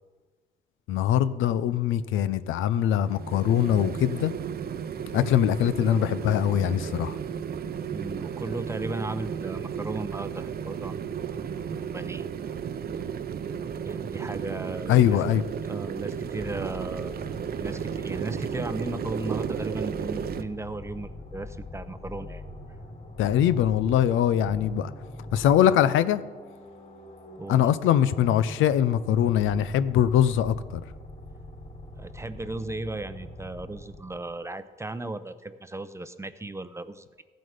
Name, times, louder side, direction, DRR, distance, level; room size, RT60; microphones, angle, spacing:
voice 1, 0.9-4.3 5.1-7.2 14.9-15.5 23.2-24.9 25.3-26.2 27.5-30.8, left 10 dB, 85° left, 0.6 m, -22 dB
sound 1, 3.0-20.4, right 7 dB, 50° right, 0.7 m, -34 dB
voice 2, 7.9-11.4 11.6-12.3 13.8-15.2 15.7-17.2 17.6-22.4 27.4-27.6 31.9-37.2, right 2 dB, 15° right, 0.6 m, -36 dB
sound 2, 16.4-34.4, left 1 dB, 45° left, 3.8 m, -43 dB
15.0 x 7.8 x 5.1 m
cardioid pair, 90°, 20 cm